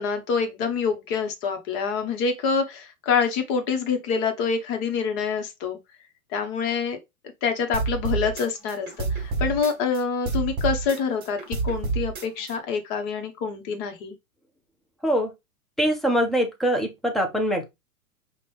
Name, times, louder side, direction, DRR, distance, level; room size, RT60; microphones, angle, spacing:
voice 1, 0.0-5.8 6.3-7.0 7.4-14.1, left 5 dB, 40° left, 1.2 m, -26 dB
sound 1, 7.7-10.0 10.3-12.5, right 4 dB, 25° right, 1.7 m, -28 dB
voice 2, 15.8-17.7, equal, ahead, 0.6 m, -23 dB
5.2 x 2.5 x 3.4 m
hypercardioid pair, 115°, 43 cm